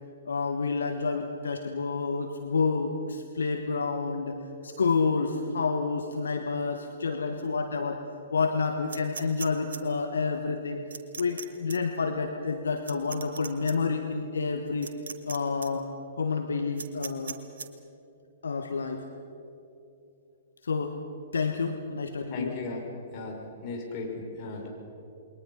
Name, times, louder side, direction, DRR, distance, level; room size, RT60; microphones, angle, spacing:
voice 1, 0.2-8.0 8.3-10.8 11.2-14.9 15.3-15.9 16.2-17.4 18.4-19.0 20.6-21.0 21.3-22.5, left 4 dB, 70° left, 6 dB, 1.3 m, -29 dB
sound 1, 8.9-9.8 10.9-11.4 11.7-11.8 12.8-13.7 14.8-15.4 15.6-15.7 16.8-17.7, right 5 dB, 65° right, 1.5 m, -38 dB
voice 2, 22.3-22.8 23.1-24.7, left 3 dB, 35° left, 0 dB, 5.4 m, -36 dB
28.5 x 22.0 x 5.6 m, 2.8 s
figure-of-eight pair, 115°, 0 cm